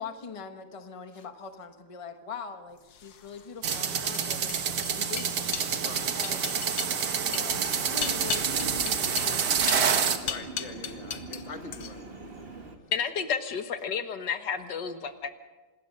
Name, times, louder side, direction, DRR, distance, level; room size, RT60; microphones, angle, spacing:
voice 1, 0.0-5.6 6.1-6.7 7.2-10.2, left 5 dB, 20° left, 7 dB, 1.2 m, -43 dB
sound 1, 2.9-11.4 11.7-12.2, left 8 dB, 70° left, 1.7 m, -37 dB
sound 2, 3.6-10.2, right 7 dB, 75° right, 2.0 m, -28 dB
voice 2, 5.8-6.1 10.2-12.2, left 3 dB, 45° left, 6 dB, 2.0 m, -43 dB
Train, 7.5-12.8, right 3 dB, 35° right, 2.1 m, -41 dB
voice 3, 12.9-15.3, left 6 dB, 85° left, 9 dB, 1.9 m, -31 dB
26.5 x 20.5 x 5.4 m, 1.3 s
omnidirectional pair, 1.8 m